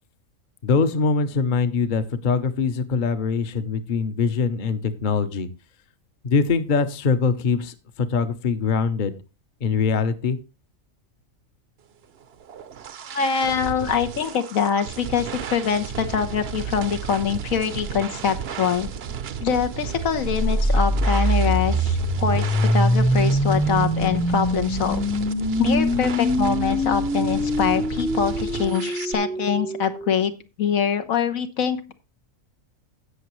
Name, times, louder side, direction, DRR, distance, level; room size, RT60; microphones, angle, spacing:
voice 1, 0.6-5.5 6.2-9.1 9.6-10.4, left 5 dB, 40° left, 11 dB, 0.9 m, -23 dB
sound 1, 12.2-29.1, right 8 dB, 55° right, 0.8 m, -33 dB
voice 2, 13.1-18.9 19.4-25.1 25.6-30.3 30.6-31.9, left 7 dB, 80° left, 7 dB, 1.5 m, -24 dB
sound 2, 20.2-30.1, equal, 10° left, 0.4 m, -23 dB
16.5 x 6.2 x 3.1 m, 0.29 s
omnidirectional pair, 1.4 m